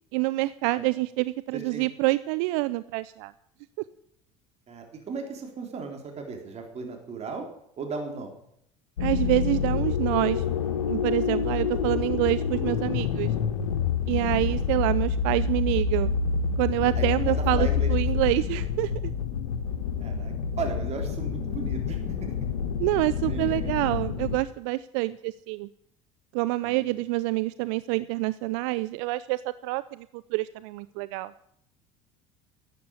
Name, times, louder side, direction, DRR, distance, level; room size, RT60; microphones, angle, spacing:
voice 1, 0.1-3.3 9.0-10.4 10.9-13.3 14.1-16.1 16.6-19.1 22.8-25.7 26.3-31.3, right 19 dB, 70° right, 15 dB, 0.5 m, -27 dB
voice 2, 1.5-1.8 4.7-7.5 7.8-8.3 16.9-17.9 20.0-22.3 23.2-23.7 26.6-27.0, right 5 dB, 40° right, 2 dB, 3.8 m, -36 dB
sound 1, 9.0-24.4, left 6 dB, 85° left, 1.4 m, -27 dB
12.5 x 8.6 x 9.7 m, 0.72 s
hypercardioid pair, 75°, 17 cm